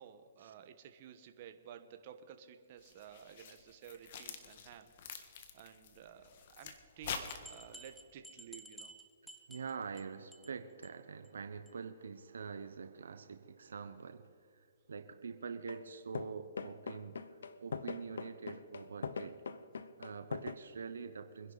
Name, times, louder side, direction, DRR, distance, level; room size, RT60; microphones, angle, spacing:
voice 1, 0.0-4.9 5.5-8.9, right 9 dB, 45° right, 8 dB, 1.2 m, -54 dB
sound 1, 2.8-7.9, left 6 dB, 50° left, 1.5 m, -46 dB
sound 2, 7.3-10.0 10.3-10.6 10.8-10.9 11.2-11.3 11.7-11.8, right 2 dB, ahead, 1.1 m, -53 dB
voice 2, 9.5-19.3 20.0-21.5, right 5 dB, 80° right, 9 dB, 0.9 m, -45 dB
sound 3, 15.7-15.9 16.1-20.5, left 5 dB, 80° left, 0.8 m, -41 dB
25.0 x 10.5 x 4.0 m, 2.6 s
hypercardioid pair, 145°, 0 cm